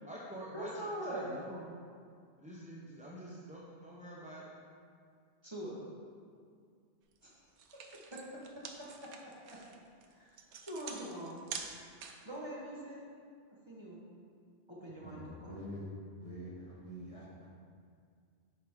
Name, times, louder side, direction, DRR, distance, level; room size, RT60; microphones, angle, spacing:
voice 1, 0.0-1.7 2.4-4.4, right 1 dB, 10° right, -6 dB, 0.5 m, -46 dB
voice 2, 0.5-1.3 5.4-5.8 7.2-7.3 8.1-8.2 8.5-8.6 9.0-9.1 10.1-10.3 10.6-11.4 12.2-13.0 13.7-14.0 14.7-15.5, right 1 dB, 25° right, -6 dB, 1.1 m, -43 dB
sound 1, 7.2-7.3 7.6-12.4, right 6 dB, 85° right, 0.9 m, -46 dB
voice 3, 15.0-15.9 16.2-17.5, equal, 30° left, -6 dB, 1.4 m, -46 dB
8.0 x 4.9 x 3.6 m, 2.2 s
omnidirectional pair, 1.1 m